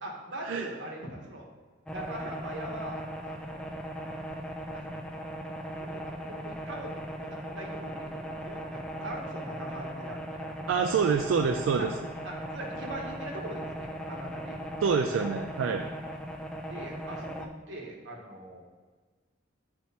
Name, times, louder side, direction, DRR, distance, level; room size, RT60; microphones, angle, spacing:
voice 1, 0.0-1.5 1.9-3.8 4.7-5.0 5.8-10.5 11.7-11.9 12.2-14.7 16.6-18.6, right 1 dB, 70° right, -1 dB, 1.2 m, -42 dB
sound 1, 1.9-17.5, equal, 5° left, 0.4 m, -38 dB
voice 2, 10.7-11.9 14.8-15.8, right 5 dB, 90° right, 5 dB, 0.3 m, -26 dB
7.5 x 4.5 x 2.8 m, 1.4 s
head